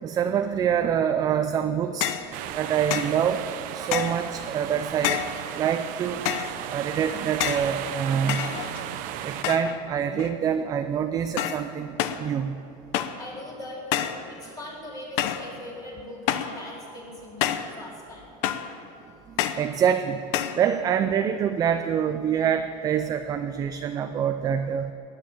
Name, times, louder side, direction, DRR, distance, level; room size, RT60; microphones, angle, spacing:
voice 1, 0.0-2.1 2.6-3.4 3.7-5.3 5.6-6.2 6.7-8.5 9.2-12.6 19.6-20.2 20.5-24.9, right 8 dB, 20° right, 8 dB, 0.3 m, -25 dB
sound 1, 2.0-2.3 2.9-3.2 3.9-4.3 5.0-5.4 6.2-6.6 7.4-7.7 8.3-8.9 9.4-9.8 10.1-10.6 11.4-11.7 12.0-12.3 12.9-13.2 13.9-14.2 15.2-15.5 16.3-16.6 17.4-17.7 18.4-18.7 19.4-19.7 20.3-20.6, left 11 dB, 55° left, 0.8 m, -28 dB
sound 2, 2.3-9.4, right 11 dB, 40° right, 0.8 m, -35 dB
voice 2, 13.2-18.3, left 1 dB, 20° left, -4 dB, 3.8 m, -40 dB
17.0 x 10.0 x 7.3 m, 2.6 s
supercardioid pair, 160°, 21 cm